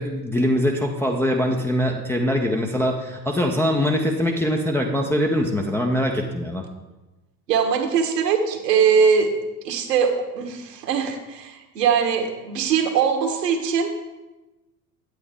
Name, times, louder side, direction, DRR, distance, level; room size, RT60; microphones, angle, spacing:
voice 1, 0.0-6.7, equal, 5° left, 0 dB, 0.3 m, -23 dB
voice 2, 7.5-9.3 9.6-13.9, right 6 dB, 75° right, 3 dB, 1.4 m, -21 dB
8.7 x 8.6 x 3.5 m, 1.1 s
figure-of-eight pair, 75°, 50 cm